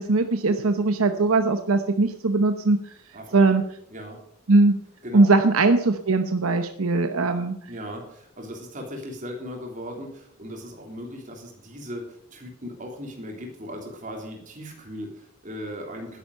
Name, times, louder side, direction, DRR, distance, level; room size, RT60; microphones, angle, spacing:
voice 1, 0.0-2.8 3.3-3.6 4.5-4.8 5.1-7.6, right 3 dB, 80° right, 8 dB, 0.9 m, -20 dB
voice 2, 3.1-3.6 3.9-4.2 5.0-5.3 7.7-16.2, equal, 35° right, 1 dB, 3.6 m, -38 dB
12.0 x 10.0 x 6.7 m, 0.69 s
head